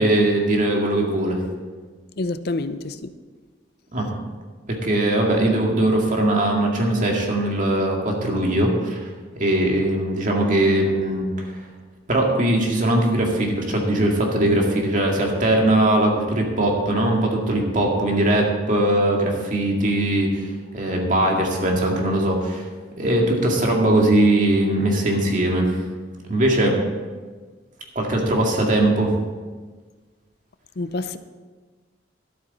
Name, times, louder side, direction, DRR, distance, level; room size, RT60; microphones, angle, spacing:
voice 1, 0.0-1.4 3.9-4.2 4.7-9.0 9.4-11.5 12.1-20.4 20.7-22.7 23.0-25.8 26.3-26.8 28.0-29.1, right 1 dB, 45° right, 0 dB, 2.1 m, -20 dB
voice 2, 2.2-3.1 30.8-31.2, left 2 dB, 55° left, 12 dB, 0.5 m, -27 dB
12.5 x 12.0 x 4.2 m, 1.4 s
head